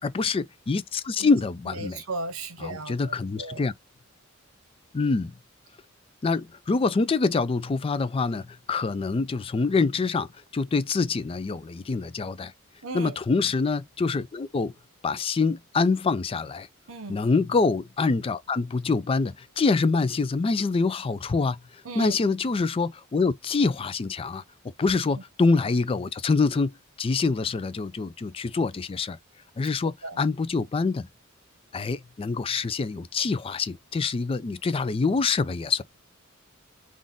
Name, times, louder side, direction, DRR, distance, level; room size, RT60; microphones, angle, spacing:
voice 1, 0.0-2.0 2.6-3.7 4.9-5.3 6.2-10.3 10.5-12.5 12.9-14.7 15.0-16.7 17.1-21.6 22.0-24.4 24.8-26.7 27.0-29.2 29.6-31.1 31.7-35.8, left 4 dB, 25° left, 0.3 m, -25 dB
voice 2, 1.7-3.6 12.8-13.2 16.9-17.2 21.8-22.1 29.8-30.2, right 3 dB, 80° right, 0.9 m, -36 dB
3.9 x 2.5 x 3.6 m
head